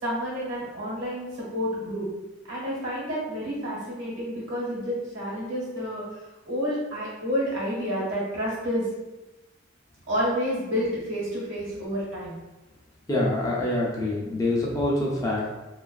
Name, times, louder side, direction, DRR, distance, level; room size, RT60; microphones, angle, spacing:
voice 1, 0.0-1.3 1.5-2.1 2.5-6.0 6.5-8.8 10.1-12.4, equal, 75° right, -6 dB, 1.1 m, -29 dB
voice 2, 13.1-15.5, left 1 dB, 15° left, -4 dB, 0.4 m, -25 dB
2.3 x 2.3 x 2.3 m, 1.1 s
head